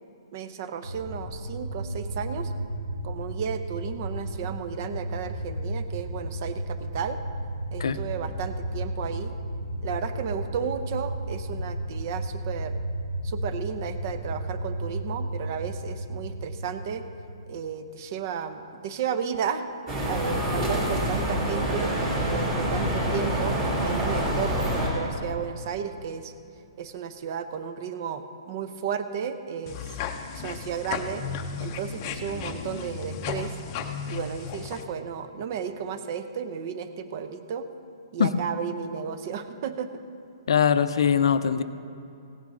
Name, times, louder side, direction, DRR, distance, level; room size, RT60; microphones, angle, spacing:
voice 1, 0.3-2.5 3.0-7.2 7.7-9.4 9.8-12.8 13.2-17.0 17.5-19.7 20.1-21.9 22.3-26.3 26.8-29.9 30.3-31.2 31.6-33.6 34.1-37.7 38.1-39.9, right 7 dB, 40° right, 10 dB, 0.6 m, -33 dB
sound 1, 0.8-17.6, right 1 dB, 90° right, 1.5 m, -33 dB
sound 2, 19.9-24.9, equal, 20° right, 2.4 m, -26 dB
sound 3, 29.7-34.8, left 6 dB, 25° left, 0.6 m, -34 dB
voice 2, 40.5-41.6, left 7 dB, 70° left, 12 dB, 0.5 m, -21 dB
16.5 x 9.3 x 3.8 m, 2.6 s
hypercardioid pair, 165°, 3 cm